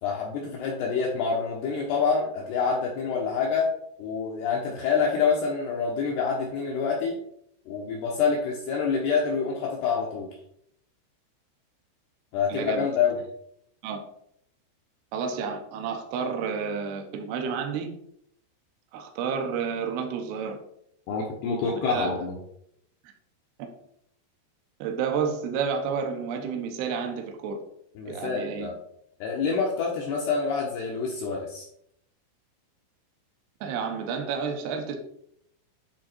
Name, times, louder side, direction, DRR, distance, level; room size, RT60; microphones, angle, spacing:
voice 1, 0.0-3.7 4.0-7.2 7.7-10.3 12.3-13.2 21.1-22.4 28.0-28.7 29.2-31.7, left 5 dB, 75° left, -2 dB, 2.5 m, -27 dB
voice 2, 12.5-12.9 13.8-14.0 15.1-17.9 18.9-20.6 21.6-22.1 23.6-23.7 24.8-27.6 28.0-28.7 33.6-35.0, right 6 dB, 75° right, 3 dB, 2.5 m, -30 dB
10.0 x 3.8 x 4.4 m, 0.72 s
omnidirectional pair, 5.8 m